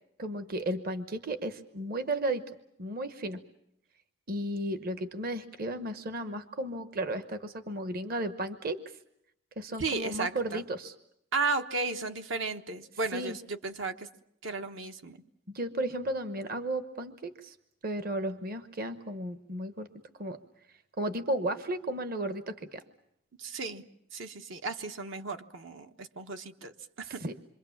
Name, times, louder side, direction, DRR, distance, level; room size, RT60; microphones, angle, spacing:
voice 1, 0.2-2.4 2.8-3.4 4.3-8.8 9.6-10.9 13.1-13.4 15.5-17.6 17.8-19.9 20.2-20.4 21.0-22.8 27.2-27.3, right 1 dB, 45° right, 10 dB, 1.1 m, -34 dB
voice 2, 9.8-10.6 11.3-14.1 14.4-15.2 23.4-23.8 24.1-27.2, right 3 dB, 65° right, 7 dB, 1.2 m, -34 dB
27.0 x 24.5 x 7.2 m, 0.77 s
head